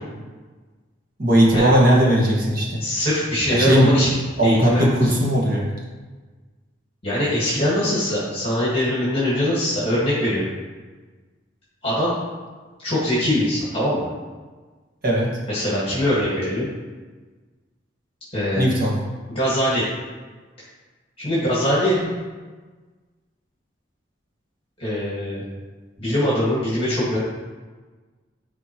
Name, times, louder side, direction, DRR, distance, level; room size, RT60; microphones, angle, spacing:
voice 1, 1.2-2.8 3.5-3.9 4.4-5.6 15.0-15.3 18.6-18.9 22.0-22.2, equal, 50° right, -3 dB, 1.7 m, -18 dB
voice 2, 2.8-4.1 4.4-5.1 7.0-10.5 11.8-12.1 12.8-14.1 15.5-16.7 18.3-18.6 19.3-19.9 21.2-22.0 24.8-25.4 26.0-27.2, left 1 dB, 30° left, -8 dB, 1.8 m, -22 dB
10.5 x 4.3 x 3.1 m, 1.3 s
head